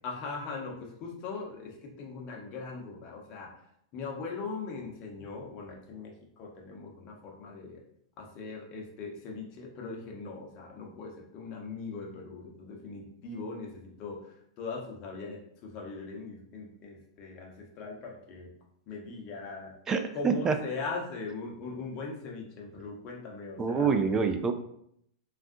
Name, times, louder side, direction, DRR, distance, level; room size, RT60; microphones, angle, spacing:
voice 1, 0.0-3.5 3.9-7.8 8.2-18.5 18.9-19.7 20.1-23.9, left 4 dB, 40° left, 0 dB, 0.8 m, -40 dB
voice 2, 19.9-20.5 23.6-24.5, right 5 dB, 20° right, 7 dB, 0.3 m, -26 dB
3.5 x 2.4 x 2.6 m, 0.71 s
hypercardioid pair, 110°, 2 cm